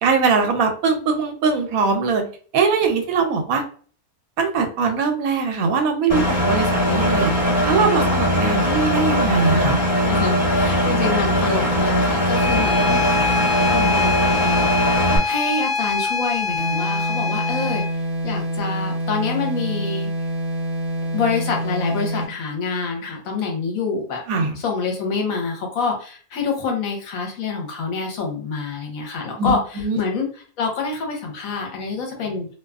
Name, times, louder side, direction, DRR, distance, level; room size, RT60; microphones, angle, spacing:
voice 1, 0.0-2.3 2.5-3.6 4.4-7.3 7.7-9.8 24.3-24.6 29.4-30.0, right 4 dB, 75° right, 5 dB, 1.0 m, -21 dB
Engine, 6.1-15.2, equal, 20° right, 1.2 m, -20 dB
voice 2, 10.0-13.3 13.7-14.7 15.2-17.8 18.2-20.1 21.1-24.2 24.6-29.6 30.0-30.3 30.6-32.5, left 4 dB, 70° left, 1 dB, 1.1 m, -26 dB
Bowed string instrument, 12.3-18.0, left 4 dB, 45° left, 0.7 m, -24 dB
sound 1, 16.6-22.4, right 1 dB, 50° right, 0.8 m, -26 dB
2.5 x 2.3 x 2.3 m, 0.43 s
omnidirectional pair, 1.5 m